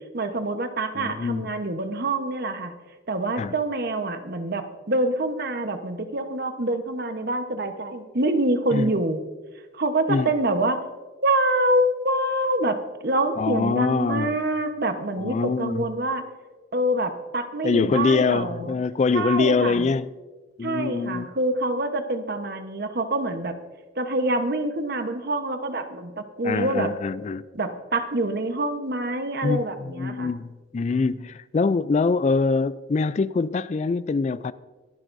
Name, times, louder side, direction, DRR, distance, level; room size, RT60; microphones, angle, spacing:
voice 1, 0.1-2.7 3.1-9.2 9.7-10.8 11.2-16.2 16.7-18.8 19.1-19.9 20.6-23.5 23.9-26.9 27.5-30.3, right 1 dB, 55° right, 1.1 m, -26 dB
voice 2, 0.9-1.5 3.4-3.5 8.7-8.9 10.1-10.3 13.4-14.3 15.2-15.9 17.6-20.1 20.6-21.3 26.4-27.4 29.4-34.5, left 4 dB, 35° left, 0.3 m, -24 dB
24.0 x 11.0 x 2.6 m
head